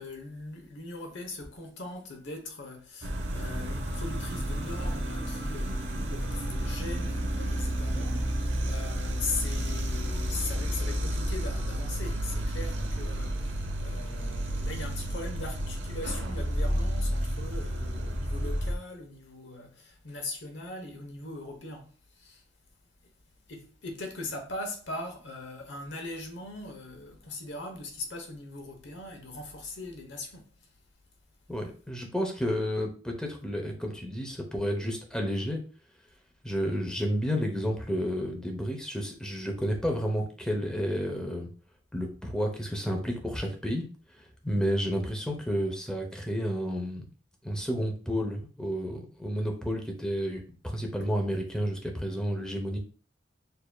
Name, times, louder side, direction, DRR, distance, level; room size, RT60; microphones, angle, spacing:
voice 1, 0.0-22.4 23.0-23.1 23.5-30.7, left 2 dB, 85° left, 1.0 m, -40 dB
sound 1, 3.0-18.7, equal, 85° right, 0.8 m, -31 dB
voice 2, 31.5-35.6 36.4-41.5 41.9-43.9 44.2-47.1 47.4-52.8, equal, 5° left, 0.8 m, -31 dB
6.7 x 2.7 x 2.3 m
head